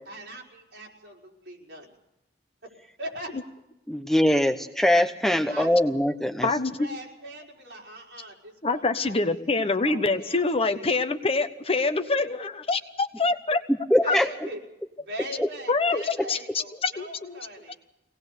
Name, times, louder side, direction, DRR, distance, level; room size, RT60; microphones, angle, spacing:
voice 1, 0.1-1.9 3.0-3.4 5.3-5.7 6.8-9.1 9.8-10.8 14.0-14.6 15.0-17.8, right 1 dB, 70° right, -2 dB, 4.9 m, -41 dB
voice 2, 3.9-6.5 13.9-14.3 15.4-15.5, left 1 dB, ahead, 7 dB, 0.9 m, -22 dB
voice 3, 6.4-6.9 8.6-13.6 14.1-14.2 15.7-17.4, left 3 dB, 35° left, 9 dB, 1.0 m, -25 dB
24.5 x 19.0 x 6.8 m, 0.90 s
head